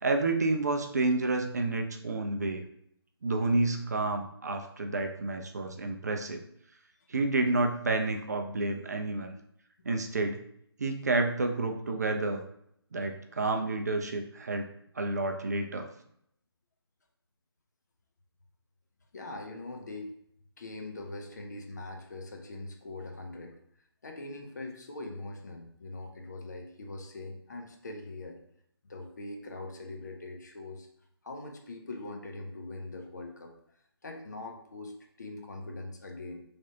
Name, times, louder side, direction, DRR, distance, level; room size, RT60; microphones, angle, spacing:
voice 1, 0.0-2.6 3.2-6.4 7.1-9.3 9.8-10.4 10.8-12.4 12.9-15.9, right 2 dB, 40° right, 5 dB, 0.4 m, -30 dB
voice 2, 19.1-20.1 20.6-23.5 24.0-28.4 28.8-30.9 31.2-33.5 34.0-36.4, left 2 dB, 45° left, 3 dB, 0.6 m, -42 dB
4.6 x 3.3 x 2.7 m, 0.70 s
figure-of-eight pair, 150°, 14 cm